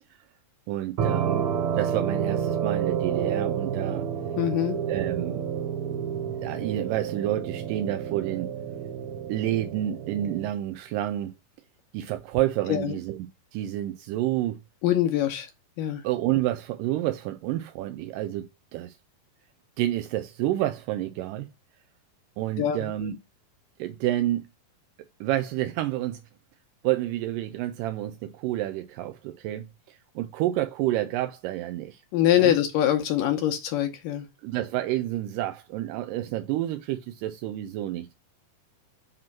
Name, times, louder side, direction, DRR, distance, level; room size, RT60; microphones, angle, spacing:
voice 1, 0.7-4.1 4.9-5.4 6.4-8.5 9.3-11.3 11.9-13.2 13.5-14.6 16.0-19.0 19.8-21.5 22.4-23.2 23.8-24.5 25.2-26.2 26.8-32.0 32.4-32.5 34.4-38.1, right 14 dB, 80° right, 2.0 m, -29 dB
sound 1, 1.0-10.5, right 8 dB, 65° right, 1.4 m, -29 dB
voice 2, 4.4-4.8 12.7-13.0 14.8-15.5 15.8-16.0 22.6-23.1 32.1-34.3, left 11 dB, 75° left, 2.3 m, -24 dB
7.5 x 3.1 x 5.7 m
omnidirectional pair, 4.3 m